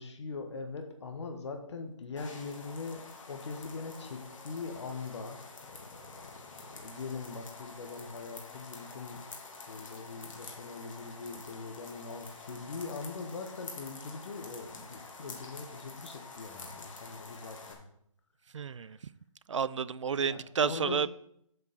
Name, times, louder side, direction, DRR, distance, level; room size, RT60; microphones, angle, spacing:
voice 1, 0.0-9.2 9.7-17.8 18.7-19.0 20.2-21.0, left 4 dB, 55° left, 5 dB, 1.5 m, -42 dB
sound 1, 2.2-17.7, left 3 dB, 70° left, 2.7 m, -48 dB
voice 2, 18.5-19.0 19.5-21.1, right 6 dB, 65° right, 18 dB, 0.4 m, -30 dB
8.1 x 5.3 x 6.6 m, 0.70 s
hypercardioid pair, 160°, 17 cm